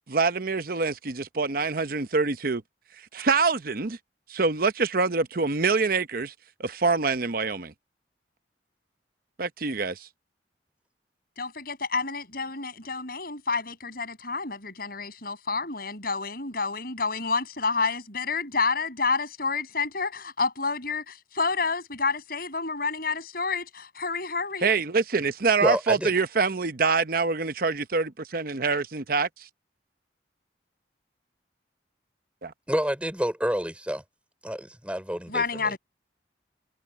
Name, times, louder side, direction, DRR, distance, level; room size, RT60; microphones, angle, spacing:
voice 1, 0.1-2.6 3.1-4.0 4.3-6.3 6.6-7.7 9.4-10.1 24.6-29.5 32.4-32.5, right 4 dB, 50° right, 0.8 m, -25 dB
voice 2, 11.4-24.7 35.3-35.8, left 4 dB, 55° left, 7.4 m, -29 dB
voice 3, 25.6-26.1 32.7-34.0 34.4-35.8, equal, 5° right, 4.5 m, -28 dB
head